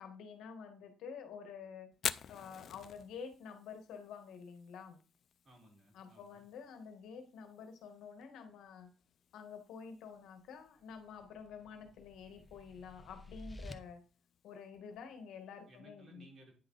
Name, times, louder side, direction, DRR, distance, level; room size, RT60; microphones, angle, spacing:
voice 1, 0.0-1.9 2.3-5.0 5.9-8.9 9.3-14.0 14.4-16.2, left 6 dB, 80° left, 6 dB, 1.4 m, -49 dB
Fire, 1.9-15.8, left 8 dB, 60° left, 0.4 m, -49 dB
voice 2, 5.4-6.4 15.7-16.5, right 2 dB, 35° right, -1 dB, 3.7 m, -60 dB
sound 1, 10.9-13.7, left 1 dB, 15° left, 0.9 m, -52 dB
9.5 x 4.7 x 3.9 m, 0.37 s
cardioid pair, 90°, 0 cm